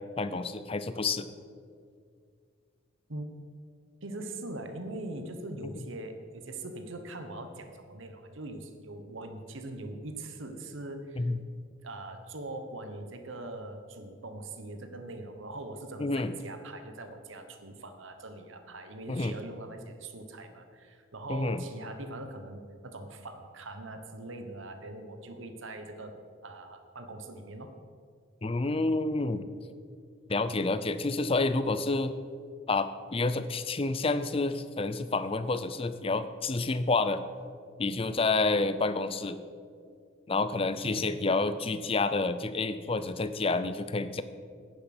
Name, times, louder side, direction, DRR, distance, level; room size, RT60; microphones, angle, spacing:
voice 1, 0.2-1.3 11.2-11.4 16.0-16.3 19.1-19.3 21.3-21.6 28.4-29.5 30.3-32.1 32.7-37.2 37.8-39.4 40.3-44.2, left 3 dB, 25° left, 12 dB, 0.5 m, -29 dB
voice 2, 4.0-11.3 11.8-26.2 26.4-27.7 40.8-41.1, right 2 dB, 70° right, 7 dB, 1.2 m, -42 dB
10.0 x 9.8 x 6.1 m, 2.2 s
head